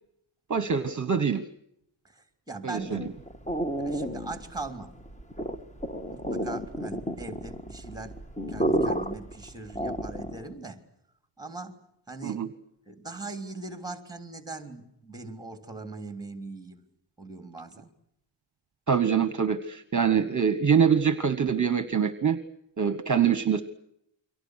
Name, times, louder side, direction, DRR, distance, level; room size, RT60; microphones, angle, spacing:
voice 1, 0.5-1.4 2.6-3.0 12.2-12.5 18.9-22.4 22.8-23.6, right 7 dB, 40° right, 12 dB, 1.2 m, -24 dB
voice 2, 2.0-3.2 3.8-4.9 6.1-8.2 8.5-10.8 11.4-11.8 12.1-12.5 12.8-16.8 17.2-17.9 20.1-20.3, right 3 dB, 10° right, 8 dB, 3.4 m, -40 dB
sound 1, 2.7-10.5, right 1 dB, 15° left, 1.6 m, -32 dB
30.0 x 24.0 x 6.4 m, 0.78 s
wide cardioid pair, 150°, 47 cm